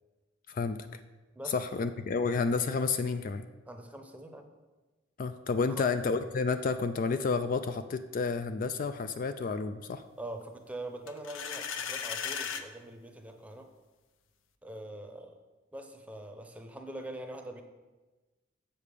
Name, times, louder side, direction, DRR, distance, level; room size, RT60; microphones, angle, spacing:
voice 1, 0.5-0.8 1.5-3.4 5.2-10.0, left 4 dB, 45° left, 10 dB, 0.3 m, -30 dB
voice 2, 3.7-4.5 5.6-5.9 10.2-13.7 14.6-15.4 15.7-17.6, right 1 dB, 5° right, 5 dB, 0.7 m, -43 dB
sound 1, 11.1-12.7, left 7 dB, 85° left, 0.6 m, -36 dB
7.4 x 5.2 x 6.6 m, 1.2 s
head